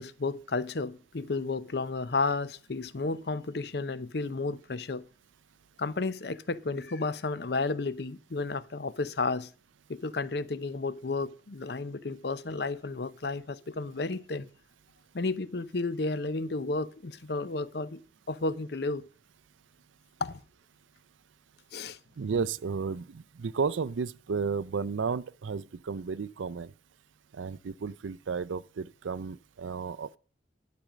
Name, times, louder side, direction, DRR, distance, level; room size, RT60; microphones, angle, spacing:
voice 1, 0.0-5.0 5.8-9.5 9.9-14.5 15.1-18.0 18.3-19.0 20.2-20.4 21.7-22.0, left 3 dB, 60° left, 0.6 m, -32 dB
voice 2, 22.2-26.7 27.3-30.2, right 5 dB, 85° right, 0.5 m, -33 dB
12.0 x 5.1 x 7.3 m
head